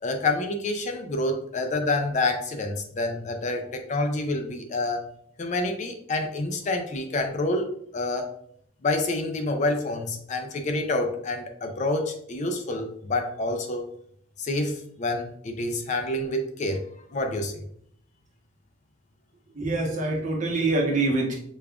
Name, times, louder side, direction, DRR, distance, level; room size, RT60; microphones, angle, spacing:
voice 1, 0.0-5.0 5.4-8.3 8.8-13.8 14.4-16.8 17.1-17.6, left 2 dB, 40° left, 5 dB, 0.4 m, -28 dB
voice 2, 19.6-21.3, right 2 dB, 40° right, -1 dB, 0.8 m, -25 dB
5.1 x 2.4 x 2.3 m, 0.66 s
head